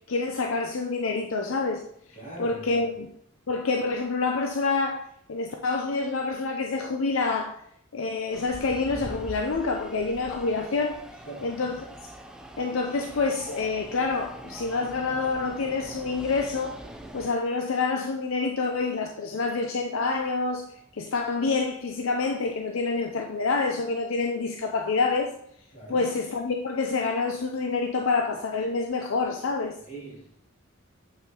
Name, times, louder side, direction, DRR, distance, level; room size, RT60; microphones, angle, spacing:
voice 1, 0.1-1.8 2.4-3.1 3.5-7.6 7.9-11.0 11.4-11.8 12.6-16.8 17.1-20.7 20.9-25.3 25.9-29.8, left 4 dB, 75° left, 2 dB, 0.6 m, -27 dB
voice 2, 2.1-2.9 11.2-11.5 25.7-26.1 29.9-30.4, right 2 dB, 40° left, -5 dB, 2.8 m, -41 dB
sound 1, 8.3-17.3, right 1 dB, 5° right, 0.5 m, -43 dB
7.8 x 5.5 x 2.9 m, 0.69 s
head